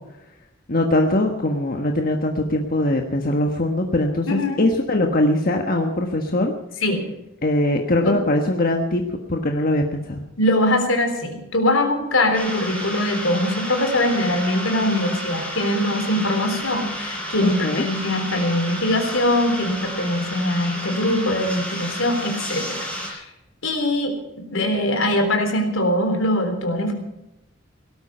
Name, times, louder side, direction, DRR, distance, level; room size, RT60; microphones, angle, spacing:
voice 1, 0.7-6.5 7.4-9.0 9.3-10.2 17.4-17.8, left 1 dB, 45° left, 3 dB, 1.4 m, -21 dB
voice 2, 4.3-4.6 6.8-7.0 8.0-8.2 10.4-22.8 23.1-23.3 23.6-24.1 24.5-26.9, left 1 dB, 75° left, 5 dB, 3.7 m, -22 dB
sound 1, 12.3-23.1, equal, 5° left, 5.8 m, -31 dB
18.0 x 13.0 x 5.7 m, 0.92 s
head